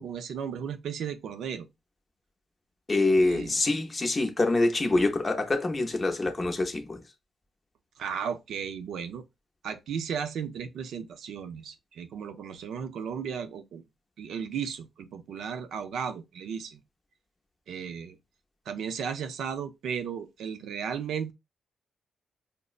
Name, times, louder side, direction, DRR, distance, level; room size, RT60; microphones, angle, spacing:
voice 1, 0.0-1.7 3.2-3.6 8.0-9.2 9.6-13.8 14.2-16.8 17.7-18.2 18.7-21.3, right 7 dB, 90° right, 0.5 m, -35 dB
voice 2, 2.9-7.0, left 2 dB, 25° left, 0.6 m, -25 dB
5.2 x 2.0 x 2.4 m
wide cardioid pair, 145°, 0 cm